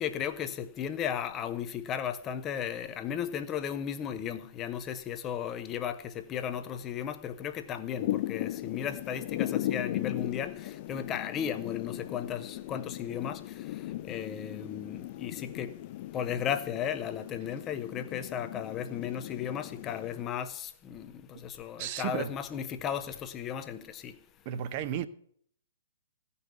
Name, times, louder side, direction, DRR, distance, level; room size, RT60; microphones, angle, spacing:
voice 1, 0.0-13.6 14.0-15.7 16.1-24.2, left 9 dB, 25° left, 0.9 m, -35 dB
Thunder / Rain, 8.0-20.2, left 14 dB, 40° left, 0.5 m, -37 dB
voice 2, 21.8-22.3 24.4-25.1, right 10 dB, 35° right, 0.8 m, -33 dB
16.0 x 5.6 x 8.0 m
figure-of-eight pair, 120°, 0 cm